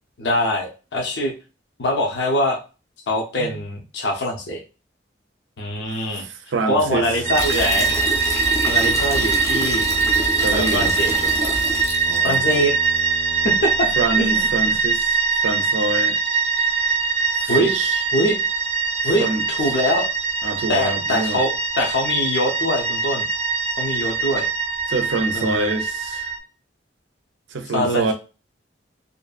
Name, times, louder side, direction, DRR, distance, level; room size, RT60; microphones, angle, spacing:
voice 1, 0.2-1.3 1.8-2.6 3.1-4.6 5.6-6.3 6.7-7.9 8.6-9.9 10.5-11.1 11.4-11.5 12.2-12.7 13.4-13.9 14.2-14.8 17.5-17.7 18.1-18.4 19.0-20.1 20.7-21.5 21.8-23.3 23.8-24.4 25.3-25.7 27.7-28.1, left 1 dB, 65° left, 0.6 m, -23 dB
voice 2, 5.9-7.1 10.4-10.9 12.1-12.4 14.0-16.2 17.3-18.0 19.2-19.4 20.4-21.4 24.9-26.3 27.5-28.1, right 3 dB, 90° right, 0.5 m, -26 dB
Bowed string instrument, 6.7-14.7, left 2 dB, 80° left, 1.2 m, -37 dB
sound 1, 7.3-12.6, equal, 20° left, 0.5 m, -28 dB
sound 2, 7.3-26.4, right 5 dB, 35° right, 0.4 m, -22 dB
2.6 x 2.5 x 2.3 m
head